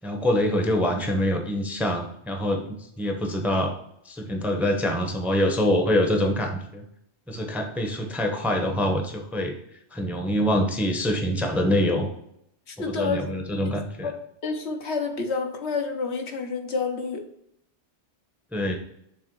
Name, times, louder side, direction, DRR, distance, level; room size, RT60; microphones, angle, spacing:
voice 1, 0.0-3.7 4.0-6.8 7.3-9.6 9.9-12.1 12.9-14.1 18.5-18.8, left 1 dB, ahead, 3 dB, 0.7 m, -25 dB
voice 2, 12.7-13.3 13.6-13.7 14.0-14.1 14.4-17.3, left 4 dB, 70° left, 4 dB, 1.2 m, -29 dB
6.6 x 3.5 x 4.6 m, 0.76 s
omnidirectional pair, 1.2 m